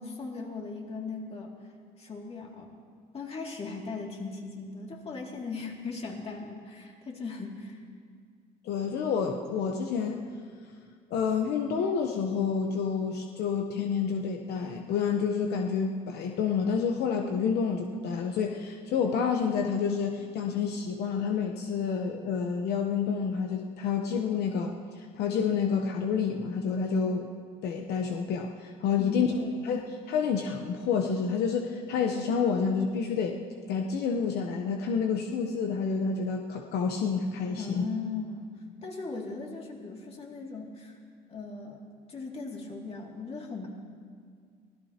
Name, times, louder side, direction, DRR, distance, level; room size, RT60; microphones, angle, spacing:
voice 1, 0.0-2.7 3.1-7.8 29.0-29.4 37.6-38.6 38.8-41.0 41.3-41.8 42.1-43.7, left 4 dB, 35° left, 0 dB, 2.5 m, -38 dB
voice 2, 8.6-10.3 11.1-27.3 27.6-29.4 29.6-33.4 33.7-37.8, left 6 dB, 75° left, 3 dB, 0.9 m, -29 dB
24.0 x 17.0 x 2.9 m, 2.1 s
cardioid pair, 110°, 17 cm